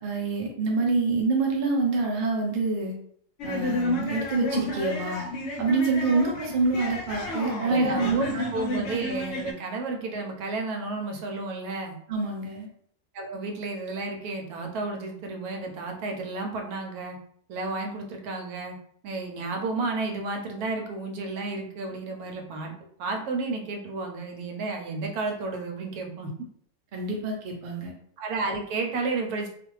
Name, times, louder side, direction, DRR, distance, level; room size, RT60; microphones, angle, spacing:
voice 1, 0.0-2.9 3.4-5.2 5.6-8.4 8.7-8.8 12.1-12.7 26.9-27.9, right 3 dB, 50° right, 0 dB, 0.6 m, -26 dB
sound 1, 3.4-9.5, left 1 dB, 65° left, 0.8 m, -31 dB
voice 2, 7.7-11.9 13.1-17.2 17.5-18.8 19.0-22.7 23.0-26.3 28.2-29.5, right 3 dB, 85° right, 3 dB, 1.1 m, -32 dB
2.5 x 2.3 x 3.1 m, 0.64 s
omnidirectional pair, 1.5 m